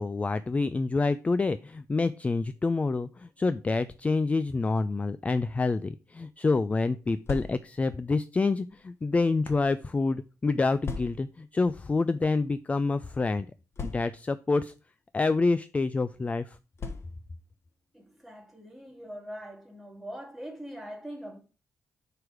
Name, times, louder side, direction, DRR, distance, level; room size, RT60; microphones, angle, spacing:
voice 1, 0.0-13.5 13.8-14.7 15.1-16.6, left 3 dB, 25° left, 0.4 m, -27 dB
sound 1, 7.0-7.9 8.7-9.7 10.8-11.4 12.3-12.5 12.7-12.8 13.7-14.4 15.3-15.5 16.8-17.4, left 4 dB, 50° left, 1.3 m, -39 dB
voice 2, 17.9-21.4, equal, ahead, 2.4 m, -42 dB
4.9 x 4.8 x 6.2 m
cardioid pair, 90°, 6 cm